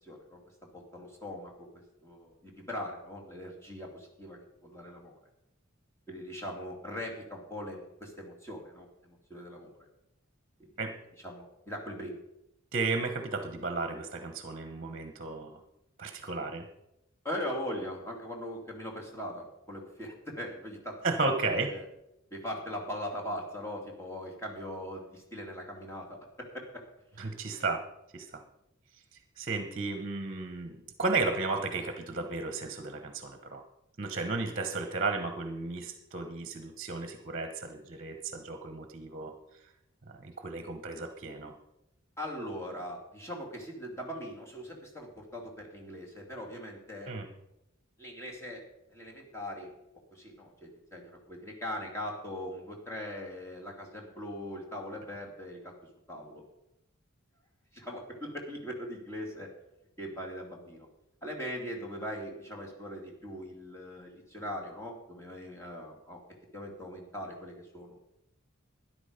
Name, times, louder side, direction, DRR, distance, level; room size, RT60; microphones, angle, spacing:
voice 1, 0.0-0.4 0.7-5.2 6.1-9.7 10.6-10.7 11.2-12.2 17.2-21.8 22.3-26.8 27.1-27.2 42.2-47.1 48.0-48.6 48.9-49.7 50.1-55.7 56.1-56.4 57.7-59.5 60.0-60.9 61.2-66.2 66.5-68.0, equal, 15° left, -1 dB, 2.6 m, -40 dB
voice 2, 12.7-15.6 16.0-16.7 21.0-21.7 27.2-27.8 28.1-28.4 29.1-33.6 34.0-39.3 40.1-41.5 47.1-47.3, right 3 dB, 40° right, 7 dB, 1.1 m, -34 dB
13.0 x 10.0 x 5.2 m, 0.84 s
head